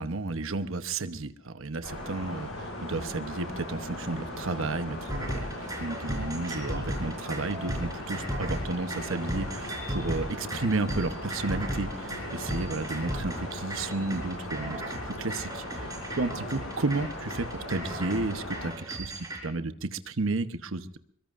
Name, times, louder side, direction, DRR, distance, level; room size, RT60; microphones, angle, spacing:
voice 1, 0.0-21.0, right 3 dB, 70° right, 10 dB, 1.0 m, -32 dB
sound 1, 1.8-18.7, left 1 dB, 80° left, 7.8 m, -38 dB
sound 2, 5.1-19.4, right 1 dB, 15° right, 4.5 m, -36 dB
23.0 x 22.5 x 2.6 m, 0.69 s
head